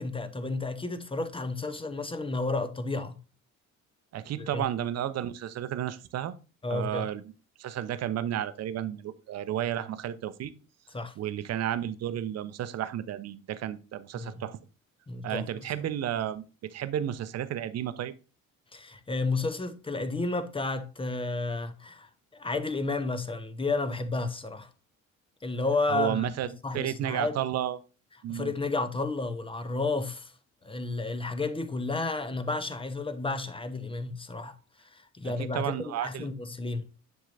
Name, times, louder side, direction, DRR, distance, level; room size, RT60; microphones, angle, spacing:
voice 1, 0.0-3.2 4.4-4.6 6.6-7.1 10.9-11.1 14.2-14.4 15.1-15.4 18.7-24.7 25.4-26.3 26.6-27.5 28.3-30.3 30.6-34.6 34.8-36.9, left 3 dB, 15° left, 0.8 m, -32 dB
voice 2, 4.1-6.3 6.7-7.2 7.6-10.5 11.2-14.6 15.2-18.1 25.9-27.8 28.2-28.5 35.2-36.3, right 11 dB, 40° right, 0.7 m, -32 dB
10.0 x 3.6 x 2.6 m
figure-of-eight pair, 55°, 40 cm